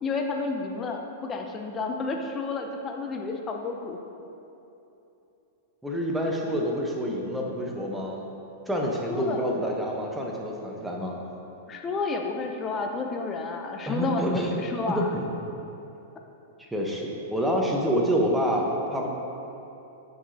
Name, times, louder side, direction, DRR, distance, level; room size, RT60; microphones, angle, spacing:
voice 1, 0.0-4.0 9.1-9.4 11.7-15.1, left 3 dB, 25° left, 3 dB, 0.6 m, -31 dB
voice 2, 5.8-8.2 8.7-11.2 13.9-14.5 14.9-15.5 16.6-19.1, equal, 5° right, -1 dB, 0.9 m, -27 dB
9.7 x 4.8 x 2.7 m, 2.9 s
hypercardioid pair, 110°, 0 cm